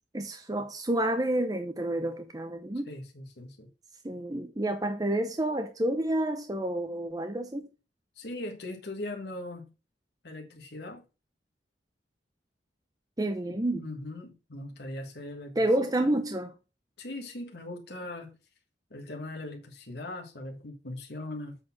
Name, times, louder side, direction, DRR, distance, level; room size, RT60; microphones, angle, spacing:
voice 1, 0.1-2.9 4.0-7.7 13.2-13.8 15.6-16.5, right 1 dB, 20° right, 0.7 m, -29 dB
voice 2, 2.9-3.7 8.2-9.7 10.2-11.0 13.4-15.7 16.0-16.1 17.0-18.4 18.9-21.6, left 1 dB, 65° left, 1.6 m, -40 dB
7.8 x 4.3 x 5.8 m
head